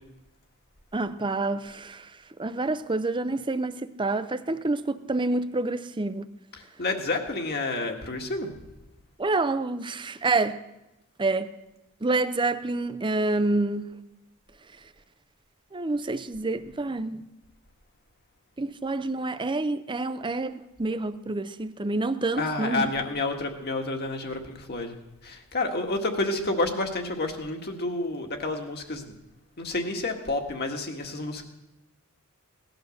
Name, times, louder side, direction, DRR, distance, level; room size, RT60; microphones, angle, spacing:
voice 1, 0.9-2.0 2.4-6.3 9.2-10.6 11.2-11.5 12.0-14.0 15.7-17.2 18.6-22.9, right 2 dB, 20° right, 0.6 m, -28 dB
voice 2, 6.5-8.5 22.4-25.0 25.2-29.1 29.6-31.4, left 2 dB, 45° left, 1.9 m, -29 dB
18.0 x 12.0 x 6.5 m
head